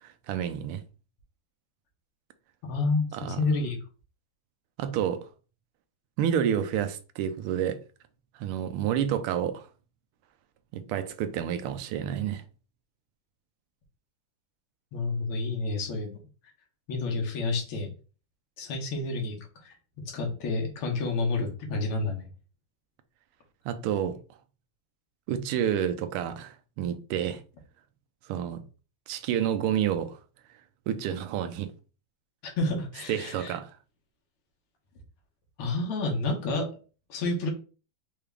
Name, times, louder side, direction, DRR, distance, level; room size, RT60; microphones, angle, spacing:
voice 1, 0.0-0.8 3.1-3.4 4.8-5.2 6.2-7.8 8.4-9.7 10.7-12.4 23.6-24.2 25.3-27.4 28.3-28.6 29.1-30.2 30.9-31.7 33.1-33.7, right 9 dB, 90° right, 1.5 m, -29 dB
voice 2, 2.6-3.8 14.9-16.2 16.9-17.9 18.6-19.7 20.1-22.3 32.6-33.6 35.6-36.7 37.1-37.5, left 3 dB, 85° left, 2.0 m, -29 dB
4.7 x 2.4 x 3.3 m
omnidirectional pair, 2.3 m